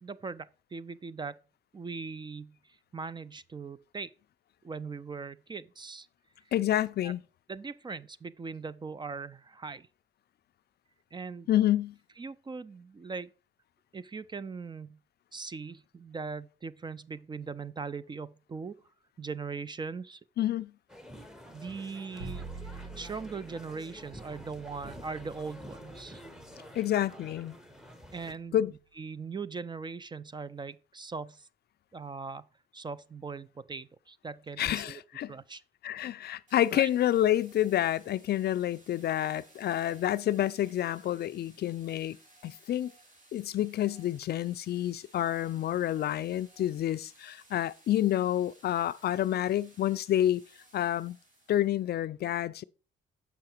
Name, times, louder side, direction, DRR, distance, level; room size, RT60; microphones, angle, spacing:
voice 1, 0.0-1.4 1.7-4.1 4.6-6.1 7.0-7.1 7.5-9.9 11.1-11.5 12.2-13.3 13.9-15.0 15.3-18.8 19.2-20.2 21.5-26.2 28.1-31.5 31.9-32.5 32.7-35.0 35.3-35.6 36.7-36.9, right 4 dB, 25° right, 0.4 m, -40 dB
voice 2, 6.5-7.2 11.5-11.9 20.4-20.7 26.8-27.6 28.5-28.7 34.6-35.3 35.8-42.2 42.4-42.9 43.3-50.4 50.7-51.2 51.5-52.6, left 12 dB, 55° left, 0.4 m, -28 dB
sound 1, 20.9-28.3, equal, 5° right, 0.9 m, -49 dB
Bowed string instrument, 22.2-28.3, right 4 dB, 80° right, 1.6 m, -47 dB
sound 2, 36.5-52.0, right 2 dB, 40° right, 2.7 m, -59 dB
6.9 x 5.8 x 4.4 m
cardioid pair, 90°, 20 cm